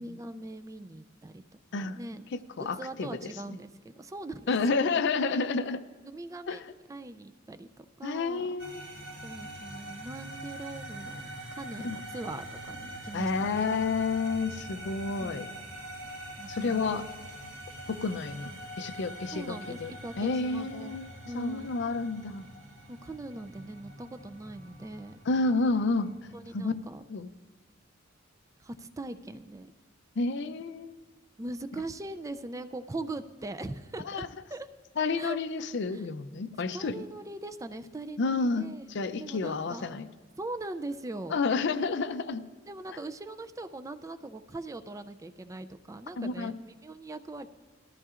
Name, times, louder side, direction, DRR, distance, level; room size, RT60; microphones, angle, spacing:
voice 1, 0.0-1.4 1.7-2.2 2.6-3.7 4.0-4.8 6.1-6.6 6.9-8.5 9.2-13.8 15.2-15.4 16.4-17.0 19.3-21.0 21.3-21.7 22.9-25.2 26.3-27.0 28.6-29.7 31.4-34.3 34.5-34.7 35.2-35.4 35.9-36.0 36.7-38.8 39.2-39.9 40.4-41.4 42.7-47.5, right 2 dB, 15° right, 10 dB, 0.4 m, -41 dB
voice 2, 2.3-3.6 4.5-5.8 6.5-6.6 8.0-8.8 11.8-12.0 13.1-15.5 16.5-17.0 17.9-19.9 20.2-21.1 21.3-22.5 25.3-26.1 26.5-26.7 27.1-27.3 30.2-31.0 34.1-34.3 35.0-37.1 38.2-40.1 41.3-42.4 42.9-43.0 46.2-46.5, left 4 dB, 60° left, 12 dB, 0.5 m, -30 dB
sound 1, 8.6-26.6, right 1 dB, 80° right, 3.1 m, -44 dB
19.0 x 14.0 x 2.5 m, 1.4 s
head